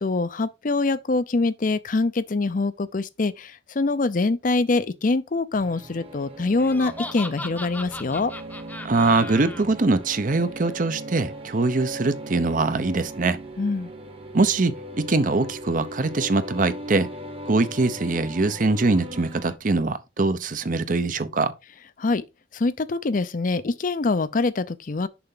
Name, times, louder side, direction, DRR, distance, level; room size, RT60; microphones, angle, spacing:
voice 1, 0.0-8.3 13.6-13.9 22.0-22.2 22.5-25.1, left 3 dB, 50° left, 0.5 m, -24 dB
sound 1, 5.5-19.6, right 1 dB, 30° right, 1.1 m, -38 dB
Laughter, 6.6-9.6, left 2 dB, 10° left, 0.7 m, -37 dB
voice 2, 8.8-13.4 14.3-17.1 17.5-21.5, right 3 dB, 50° right, 0.7 m, -23 dB
6.9 x 5.6 x 3.8 m
head